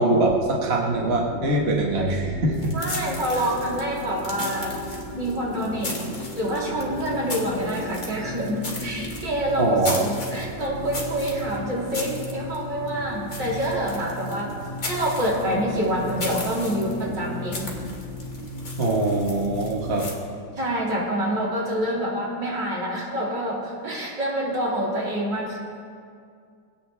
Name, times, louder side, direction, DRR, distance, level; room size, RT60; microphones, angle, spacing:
voice 1, 0.0-2.8 9.6-10.0 18.8-20.1, right 2 dB, 35° right, -2 dB, 1.7 m, -23 dB
sound 1, 0.9-20.0, left 2 dB, 25° left, 2.4 m, -36 dB
sound 2, 2.5-20.1, left 2 dB, 45° left, 2.9 m, -37 dB
voice 2, 2.7-4.8 5.2-14.5 14.8-17.7 20.5-25.6, right 1 dB, 65° right, -5 dB, 4.2 m, -27 dB
24.0 x 17.5 x 3.4 m, 2.3 s
omnidirectional pair, 2.0 m